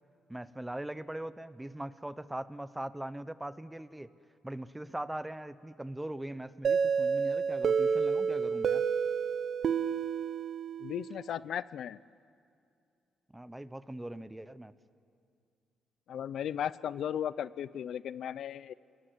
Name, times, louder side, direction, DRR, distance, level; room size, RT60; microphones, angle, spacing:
voice 1, 0.3-4.1 4.4-8.8 13.3-14.7, right 1 dB, 10° right, 15 dB, 0.8 m, -41 dB
sound 1, 6.6-11.3, right 6 dB, 60° right, 0.8 m, -30 dB
voice 2, 10.8-12.0 16.1-18.7, left 9 dB, 70° left, 18 dB, 0.5 m, -36 dB
27.5 x 19.5 x 8.2 m, 2.4 s
cardioid pair, 90°, 0 cm